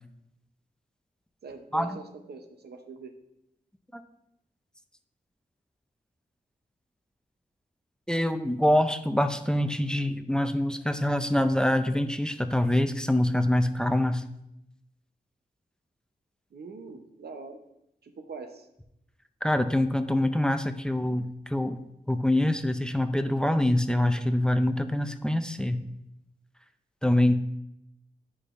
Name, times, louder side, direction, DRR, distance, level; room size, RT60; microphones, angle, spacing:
voice 1, 1.4-3.1 16.5-17.6 18.0-18.7, right 4 dB, 75° right, 5 dB, 0.8 m, -43 dB
voice 2, 8.1-14.2 19.4-21.8 22.1-25.8 27.0-27.5, left 1 dB, 5° left, 9 dB, 0.5 m, -25 dB
9.2 x 4.9 x 2.5 m, 0.82 s
cardioid pair, 60°, 16 cm